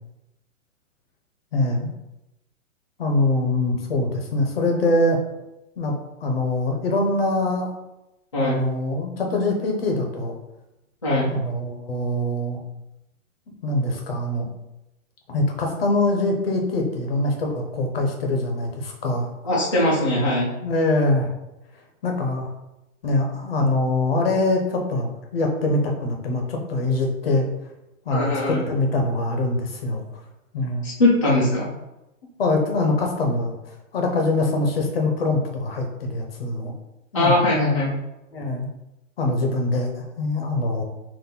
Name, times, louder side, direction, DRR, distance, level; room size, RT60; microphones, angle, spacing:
voice 1, 1.5-1.9 3.0-5.2 5.8-5.9 6.2-7.7 8.4-10.3 11.2-12.6 13.6-14.5 15.3-19.3 20.6-21.3 22.0-22.5 23.0-27.5 28.1-30.0 30.5-30.9 32.4-33.5 33.9-36.7 37.1-37.4 38.3-38.7 39.2-40.8, left 2 dB, 45° left, 2 dB, 0.8 m, -23 dB
voice 2, 8.3-8.6 11.0-11.3 19.4-20.5 28.1-28.6 30.8-31.7 37.1-37.9, left 1 dB, 25° left, -8 dB, 0.4 m, -20 dB
4.1 x 2.5 x 3.7 m, 0.93 s
hypercardioid pair, 180°, 40 cm